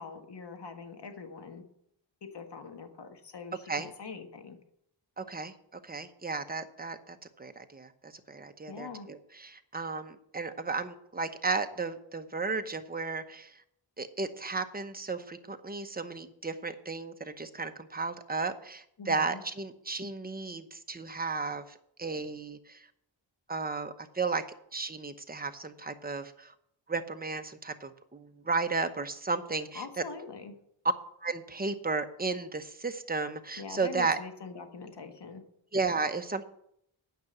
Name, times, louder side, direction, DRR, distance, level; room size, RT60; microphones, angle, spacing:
voice 1, 0.0-1.6 2.2-4.6 8.7-9.1 19.0-19.4 29.7-30.5 33.6-35.4, left 5 dB, 60° left, 6 dB, 1.6 m, -43 dB
voice 2, 5.2-13.6 14.0-22.9 23.5-24.4 24.7-26.5 26.9-29.8 31.2-34.2 35.7-36.4, right 4 dB, 20° right, 8 dB, 0.9 m, -34 dB
9.4 x 6.0 x 7.9 m, 0.72 s
cardioid pair, 75°, 47 cm